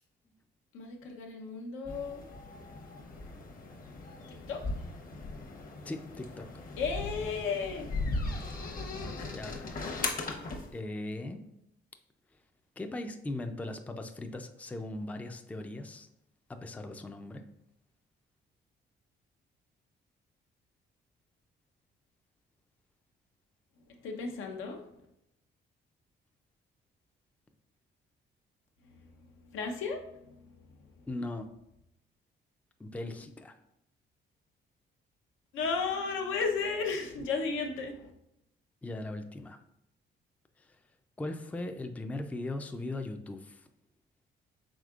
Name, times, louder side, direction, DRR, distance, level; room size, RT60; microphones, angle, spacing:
voice 1, 0.7-2.2 4.3-4.6 6.8-7.9 23.9-25.0 28.8-30.9 35.5-38.1, left 5 dB, 90° left, 2 dB, 0.7 m, -35 dB
sound 1, 1.9-10.7, left 2 dB, 45° left, 0.8 m, -38 dB
voice 2, 5.8-6.5 9.0-9.1 9.3-9.7 10.7-11.4 12.8-16.1 16.5-17.4 31.1-31.5 32.8-33.5 38.8-39.6 40.6-40.8 41.2-43.7, left 2 dB, 5° left, 6 dB, 0.3 m, -39 dB
4.9 x 3.5 x 2.4 m, 0.81 s
cardioid pair, 90°, 20 cm